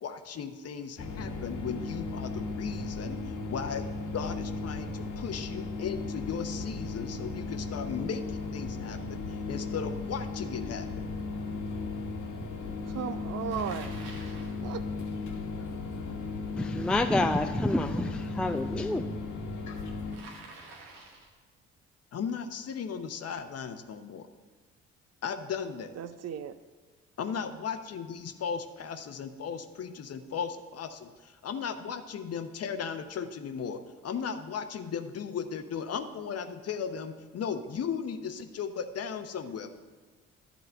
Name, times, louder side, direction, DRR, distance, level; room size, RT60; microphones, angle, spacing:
voice 1, 0.0-3.9 4.1-9.2 9.5-10.9 22.1-24.3 25.2-25.9 27.2-39.7, left 6 dB, 50° left, 8 dB, 0.8 m, -36 dB
sound 1, 1.0-20.2, left 3 dB, 65° left, 1.4 m, -36 dB
voice 2, 12.9-14.0 14.6-14.9 26.0-26.6, right 8 dB, 50° right, 12 dB, 0.6 m, -36 dB
Bicycle, 13.5-14.6 20.1-21.4, right 3 dB, 90° right, 1.2 m, -48 dB
voice 3, 16.6-19.0, left 1 dB, 5° left, 7 dB, 0.4 m, -28 dB
11.0 x 4.0 x 7.7 m, 1.4 s
hypercardioid pair, 45°, 33 cm